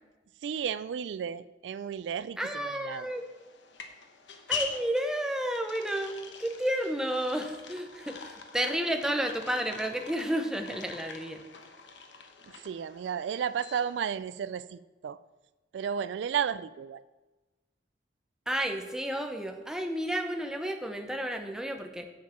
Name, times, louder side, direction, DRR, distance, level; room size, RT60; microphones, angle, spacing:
voice 1, 0.4-3.1 12.5-15.2 15.7-17.0, right 8 dB, 80° right, 16 dB, 0.3 m, -33 dB
voice 2, 2.4-3.2 4.5-11.4 18.5-22.1, right 1 dB, 5° right, 5 dB, 0.8 m, -31 dB
sound 1, 2.9-14.2, left 5 dB, 90° left, 1.1 m, -43 dB
7.6 x 7.3 x 5.7 m, 1.2 s
head